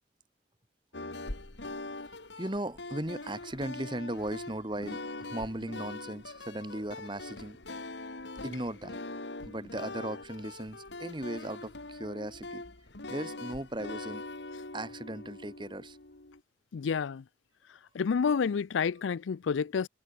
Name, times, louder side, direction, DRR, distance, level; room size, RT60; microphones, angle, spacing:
sound 1, 0.9-16.4, left 2 dB, 70° left, 2.2 m, -42 dB
voice 1, 2.1-7.6 8.4-9.0 9.4-12.6 13.1-14.2 14.7-16.0, right 1 dB, 25° right, 1.8 m, -37 dB
voice 2, 16.7-17.2 17.9-19.9, left 6 dB, 85° left, 0.4 m, -29 dB
head